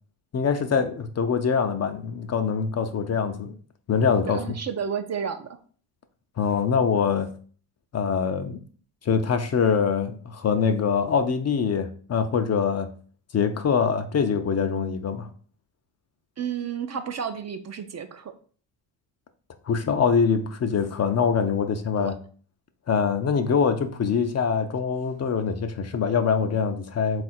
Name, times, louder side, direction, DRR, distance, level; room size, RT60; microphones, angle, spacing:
voice 1, 0.3-3.6 3.9-4.4 6.4-7.3 7.9-8.6 9.0-12.9 13.3-15.3 19.7-22.1 22.9-27.2, left 6 dB, 35° left, 0.5 m, -24 dB
voice 2, 4.2-5.6 16.4-18.3 22.0-22.1, right 7 dB, 35° right, 0.5 m, -31 dB
3.6 x 2.5 x 4.2 m
supercardioid pair, 60°, 45 cm